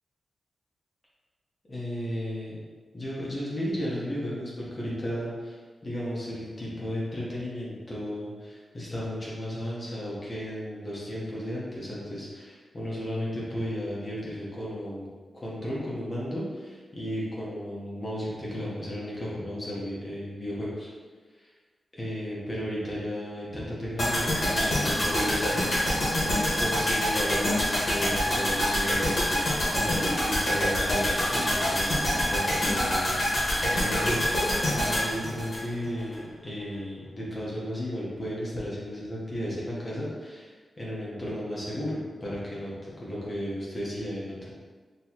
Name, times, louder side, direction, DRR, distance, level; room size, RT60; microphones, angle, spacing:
voice 1, 1.7-2.6 2.9-15.1 15.3-20.9 21.4-21.5 21.9-44.5, equal, 30° left, -6 dB, 1.0 m, -34 dB
sound 1, 24.0-36.2 36.4-36.5, left 1 dB, 55° left, 1.3 m, -26 dB
4.5 x 3.1 x 2.9 m, 1.5 s
wide cardioid pair, 110°, 0 cm